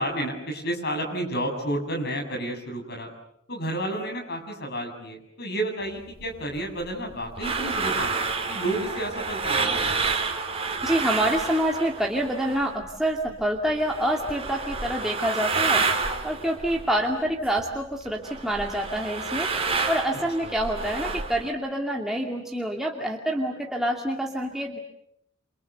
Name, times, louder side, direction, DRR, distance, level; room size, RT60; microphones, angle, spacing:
voice 1, 0.0-3.1 3.5-10.1 20.4-20.5, right 1 dB, 55° left, 3 dB, 7.5 m, -31 dB
sound 1, 6.2-12.9 13.2-17.8 18.1-21.5, right 4 dB, 30° right, 4.0 m, -29 dB
voice 2, 10.8-15.9 16.2-19.5 19.9-24.8, right 1 dB, ahead, -1 dB, 2.4 m, -27 dB
29.5 x 28.0 x 6.9 m, 0.76 s
head